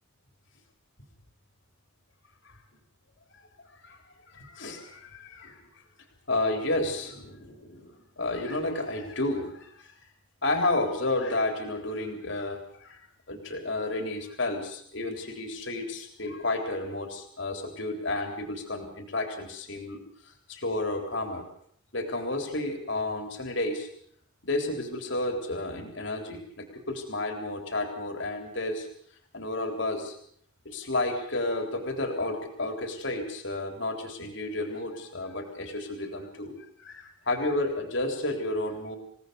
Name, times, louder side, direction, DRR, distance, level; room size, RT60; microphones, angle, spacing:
voice 1, 3.3-4.0 4.3-5.6 6.3-9.9 10.4-21.4 21.9-23.9 24.4-28.9 29.3-30.2 30.7-39.0, left 2 dB, 60° left, 4 dB, 3.7 m, -31 dB
28.5 x 18.0 x 6.9 m, 0.66 s
head